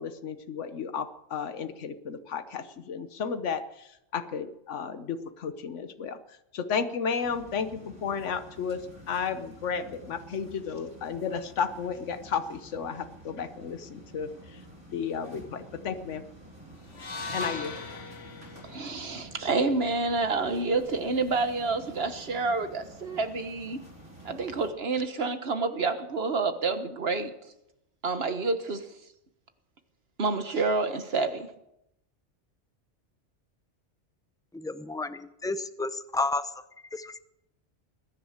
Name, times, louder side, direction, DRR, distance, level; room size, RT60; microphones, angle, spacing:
voice 1, 0.0-8.8 9.1-14.6 14.9-16.2 17.3-17.7, left 6 dB, 85° left, 1.3 m, -33 dB
sound 1, 7.2-24.7, right 1 dB, 85° right, 5.9 m, -49 dB
sound 2, 16.9-21.1, left 4 dB, 65° left, 1.7 m, -41 dB
voice 2, 18.6-23.8 24.2-27.3 28.0-28.9 30.2-31.5, right 3 dB, 55° right, 1.6 m, -28 dB
voice 3, 34.5-36.5 36.9-37.2, left 3 dB, 5° left, 0.6 m, -31 dB
21.5 x 10.5 x 6.6 m
omnidirectional pair, 1.2 m